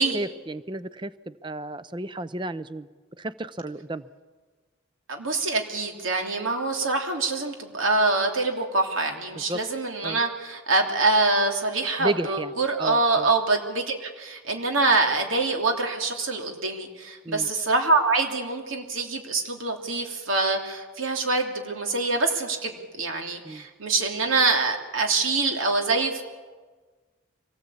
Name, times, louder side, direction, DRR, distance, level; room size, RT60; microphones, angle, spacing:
voice 1, 0.0-2.9 3.2-4.0 9.5-9.6 10.0-10.2 12.0-12.5 12.8-13.3 17.2-17.5 23.4-23.6, right 1 dB, 25° right, 15 dB, 0.6 m, -32 dB
voice 2, 5.1-26.2, right 3 dB, 85° right, 3 dB, 3.0 m, -25 dB
24.5 x 18.5 x 8.6 m, 1.4 s
head